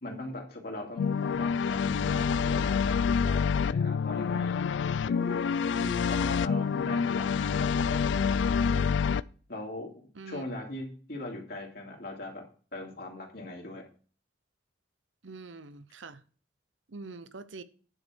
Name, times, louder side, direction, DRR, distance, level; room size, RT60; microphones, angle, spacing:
voice 1, 0.0-4.6 5.0-5.4 6.0-8.9 9.5-12.4 12.7-13.8, left 1 dB, 55° left, 2.5 m, -40 dB
sound 1, 1.0-9.2, left 6 dB, 75° left, 0.3 m, -27 dB
voice 2, 15.2-16.2 16.9-17.6, right 3 dB, 85° right, 0.8 m, -44 dB
9.9 x 5.2 x 6.1 m
head